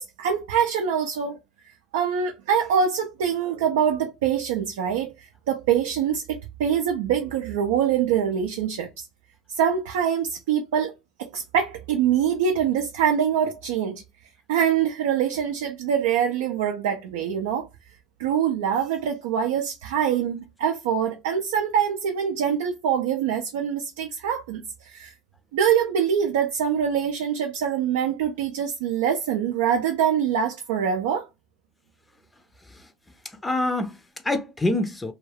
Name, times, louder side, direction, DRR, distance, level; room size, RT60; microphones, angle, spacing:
voice 1, 0.0-1.4 1.9-9.1 9.5-10.9 11.2-14.0 14.5-17.7 18.2-25.1 25.5-31.3, right 8 dB, 85° right, 0.4 m, -24 dB
voice 2, 32.6-32.9 33.2-35.1, left 2 dB, 15° left, 0.5 m, -27 dB
2.3 x 2.2 x 3.2 m
hypercardioid pair, 80°, 0 cm